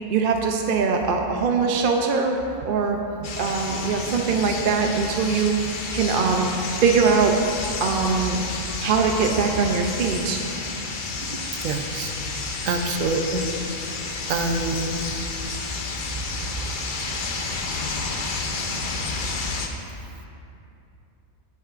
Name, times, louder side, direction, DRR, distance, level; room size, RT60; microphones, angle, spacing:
voice 1, 0.1-2.4 2.6-3.0 3.4-5.5 5.9-6.5 6.8-7.4 7.8-8.4 8.8-10.4 11.3-11.4, right 5 dB, 55° right, 2 dB, 0.7 m, -22 dB
sound 1, 3.2-19.7, left 3 dB, 45° left, 0.8 m, -30 dB
voice 2, 11.6-12.1 12.7-13.4 14.3-15.0, right 3 dB, 80° right, 5 dB, 1.1 m, -25 dB
16.0 x 8.3 x 2.5 m, 2.7 s
omnidirectional pair, 1.3 m